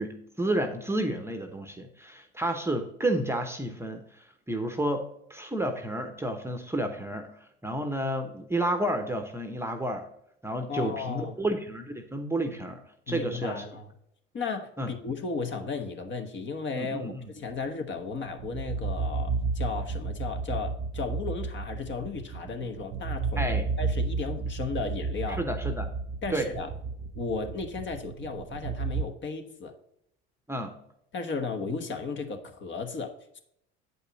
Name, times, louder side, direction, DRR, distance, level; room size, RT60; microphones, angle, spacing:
voice 1, 0.0-7.3 7.6-10.1 10.4-12.8 13.1-13.6 14.8-14.9 16.7-17.3 23.4-23.7 25.4-25.9 26.3-26.5 30.5-30.8, right 1 dB, 10° right, 5 dB, 0.9 m, -31 dB
voice 2, 10.7-11.3 13.1-13.9 14.3-25.4 26.2-26.7 27.2-29.7 31.1-33.4, left 4 dB, 35° left, 6 dB, 1.2 m, -35 dB
sound 1, 18.0-29.0, right 4 dB, 50° right, 0.6 m, -32 dB
8.1 x 5.4 x 4.0 m, 0.73 s
supercardioid pair, 90°, 32 cm